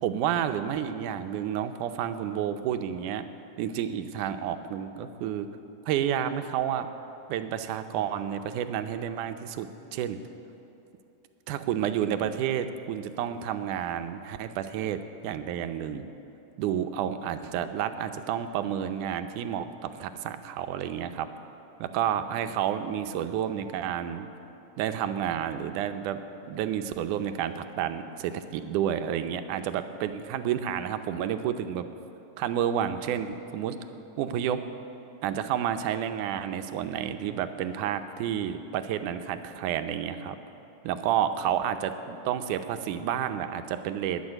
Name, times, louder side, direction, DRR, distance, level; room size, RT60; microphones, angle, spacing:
voice 1, 0.0-3.3 3.6-5.5 5.8-6.9 7.3-10.2 11.5-16.1 16.6-21.3 21.8-24.3 24.8-31.9 32.4-34.6 35.2-40.4 40.8-44.2, right 9 dB, 85° right, 8 dB, 2.2 m, -30 dB
19.5 x 7.0 x 9.8 m, 2.9 s
omnidirectional pair, 3.5 m